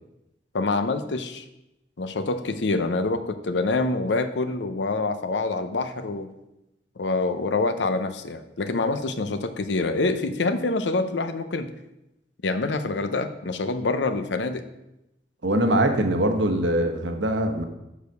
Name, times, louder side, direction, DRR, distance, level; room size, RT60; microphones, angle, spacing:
voice 1, 0.5-1.4 2.0-6.4 7.0-11.7 12.4-14.6, left 3 dB, 80° left, 10 dB, 0.7 m, -26 dB
voice 2, 15.4-17.6, right 1 dB, 90° right, 5 dB, 1.1 m, -22 dB
7.0 x 4.9 x 6.4 m, 0.92 s
head